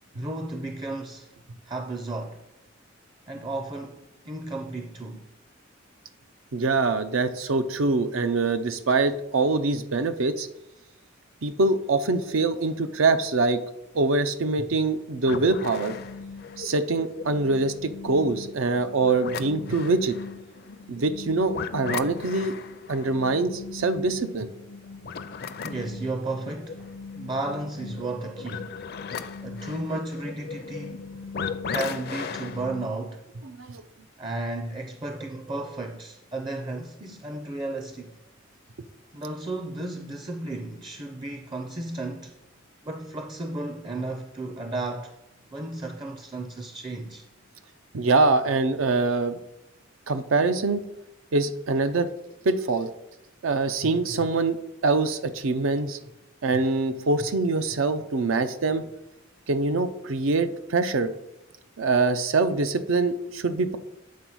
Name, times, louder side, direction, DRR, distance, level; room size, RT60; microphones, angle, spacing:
voice 1, 0.1-1.3 1.7-2.4 3.3-5.2 25.6-26.9 27.1-28.8 29.4-31.1 31.7-33.2 34.2-38.2 39.1-42.4 42.8-45.1 45.5-47.3, right 2 dB, 25° right, 0.5 m, -33 dB
voice 2, 6.5-10.5 11.4-13.6 13.9-15.9 16.6-20.2 20.9-22.5 22.9-24.5 33.5-33.8 47.9-49.4 50.1-50.9 51.3-52.1 52.4-52.9 53.4-56.0 56.4-58.8 59.5-61.1 61.8-63.8, right 3 dB, 85° right, 0.6 m, -24 dB
sound 1, 15.2-32.9, left 5 dB, 50° left, 0.5 m, -37 dB
8.5 x 4.0 x 6.2 m
head